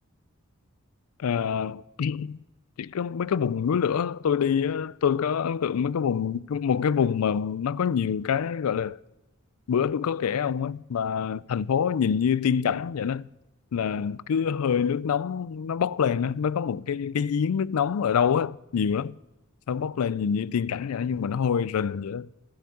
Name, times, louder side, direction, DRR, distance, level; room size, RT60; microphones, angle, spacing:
voice 1, 1.2-2.4 2.8-9.0 9.7-13.3 13.7-19.2 19.7-22.3, left 7 dB, 85° left, 0.4 m, -26 dB
12.5 x 10.0 x 7.2 m
head